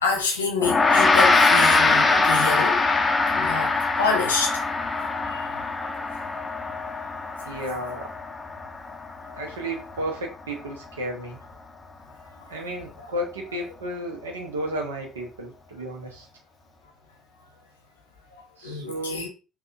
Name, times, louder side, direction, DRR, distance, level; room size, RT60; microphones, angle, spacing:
voice 1, 0.0-2.8 3.3-3.7 4.0-4.6 5.3-5.6 18.6-19.3, left 4 dB, 80° left, 0.6 m, -27 dB
Gong, 0.6-10.2, left 3 dB, 25° left, 0.4 m, -22 dB
voice 2, 7.4-8.1 9.3-11.4 12.5-16.3 18.6-19.2, right 1 dB, 80° right, 0.7 m, -33 dB
3.5 x 2.3 x 2.4 m
figure-of-eight pair, 55°, 0 cm